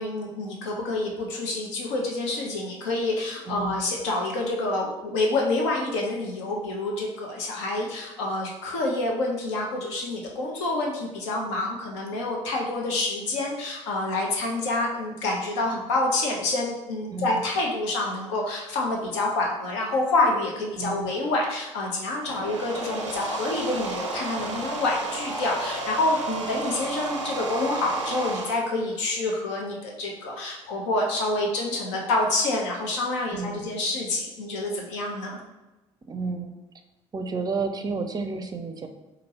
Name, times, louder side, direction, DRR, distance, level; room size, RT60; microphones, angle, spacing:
voice 1, 0.0-35.4, left 2 dB, 70° left, 0 dB, 0.7 m, -27 dB
voice 2, 3.5-3.8 17.1-17.4 20.8-21.1 33.3-33.7 36.1-36.5 37.1-38.9, right 4 dB, 25° right, 7 dB, 0.5 m, -31 dB
sound 1, 22.1-28.5, right 2 dB, 85° right, 0.4 m, -32 dB
4.4 x 2.5 x 2.9 m, 1.0 s
figure-of-eight pair, 50°, 15 cm